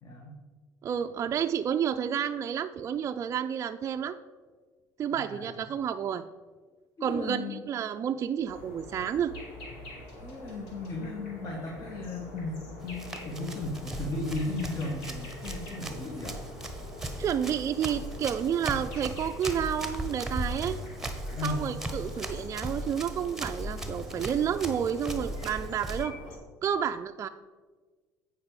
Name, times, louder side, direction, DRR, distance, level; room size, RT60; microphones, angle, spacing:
voice 1, 0.0-0.4 5.1-5.5 7.0-7.6 10.2-16.4 21.3-21.6, left 2 dB, 40° left, 0 dB, 1.5 m, -35 dB
voice 2, 0.8-4.2 5.0-6.2 7.0-9.3 17.2-20.8 21.4-26.1 26.6-27.3, right 8 dB, 40° right, 7 dB, 0.3 m, -30 dB
sound 1, 8.4-26.4, left 1 dB, 90° left, 1.7 m, -45 dB
Run, 12.8-26.0, right 1 dB, 5° right, 1.1 m, -38 dB
8.7 x 5.1 x 4.8 m, 1.4 s
supercardioid pair, 85°, 8 cm